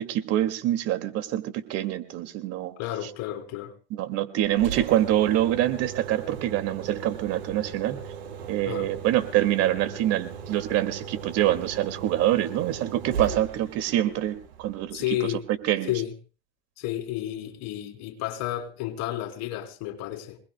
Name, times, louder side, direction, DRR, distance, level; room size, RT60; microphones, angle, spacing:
voice 1, 0.0-2.7 3.9-8.0 8.5-15.9, right 13 dB, 50° right, 2.2 m, -25 dB
voice 2, 2.8-3.7 8.7-8.9 14.9-15.4 15.9-16.1 16.8-20.4, left 13 dB, 55° left, 3.8 m, -31 dB
Engine, 4.4-15.4, right 6 dB, 85° right, 7.9 m, -38 dB
27.5 x 20.0 x 2.2 m
hypercardioid pair, 100°, 31 cm